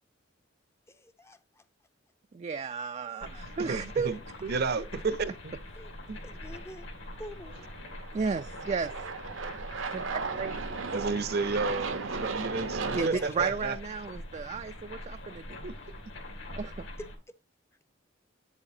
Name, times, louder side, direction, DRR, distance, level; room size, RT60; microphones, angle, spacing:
voice 1, 0.9-1.4 3.1-3.4 5.8-5.9 6.2-6.9 7.2-7.7 12.9-13.5, left 1 dB, 15° left, 0.5 m, -45 dB
voice 2, 2.3-4.2 4.4-4.5 8.1-8.9 9.9-10.8 12.9-15.6 16.5-16.9, right 5 dB, 35° right, 0.3 m, -33 dB
sound 1, 3.2-17.2, left 1 dB, 75° left, 2.8 m, -43 dB
voice 3, 3.6-5.6 6.1-6.2 10.9-13.8 15.6-15.7, right 4 dB, 55° right, 0.7 m, -32 dB
Aircraft, 7.4-13.1, right 4 dB, 85° right, 0.9 m, -36 dB
8.8 x 7.3 x 2.7 m
head